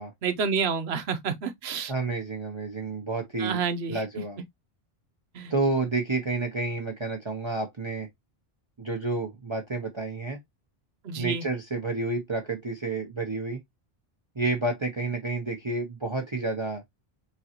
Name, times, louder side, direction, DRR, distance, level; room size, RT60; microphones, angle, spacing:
voice 1, 0.2-1.9 3.4-4.0 5.3-5.5 11.0-11.4, right 6 dB, 85° right, 1.0 m, -29 dB
voice 2, 1.9-3.6 3.9-4.4 5.5-8.1 8.8-10.4 11.2-13.6 14.4-16.8, right 3 dB, 30° right, 0.8 m, -30 dB
4.1 x 3.7 x 2.9 m
omnidirectional pair, 1.0 m